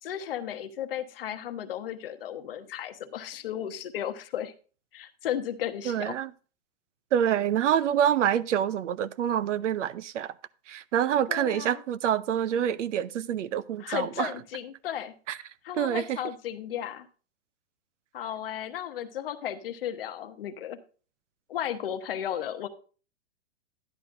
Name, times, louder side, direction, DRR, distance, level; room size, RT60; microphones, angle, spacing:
voice 1, 0.0-4.5 4.9-6.2 11.3-11.8 13.8-17.1 18.1-20.8 21.5-22.7, left 10 dB, 50° left, 1.0 m, -35 dB
voice 2, 5.9-6.3 7.1-10.3 10.7-14.3 15.3-15.4 15.8-16.2, right 9 dB, 80° right, 0.7 m, -26 dB
11.5 x 10.5 x 2.6 m
supercardioid pair, 180°, 36 cm